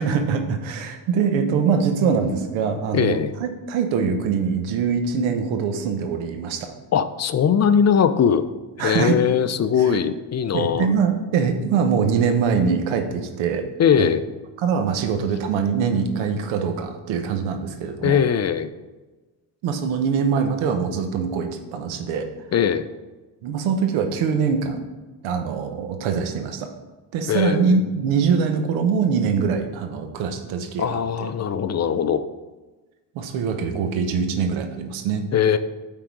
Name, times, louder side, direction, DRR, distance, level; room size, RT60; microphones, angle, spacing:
voice 1, 0.0-6.7 8.8-9.2 9.9-10.0 10.5-13.6 14.0-14.1 14.6-18.2 19.6-22.3 23.4-24.8 25.2-26.7 27.1-31.3 33.1-35.2, right 6 dB, 90° right, 6 dB, 1.0 m, -23 dB
voice 2, 2.9-3.3 6.9-8.4 8.8-10.9 13.8-14.2 18.0-18.7 22.5-22.9 27.3-27.8 30.8-32.3 35.3-35.6, left 8 dB, 35° left, 12 dB, 0.5 m, -20 dB
8.5 x 3.8 x 4.7 m, 1.2 s
supercardioid pair, 65°, 46 cm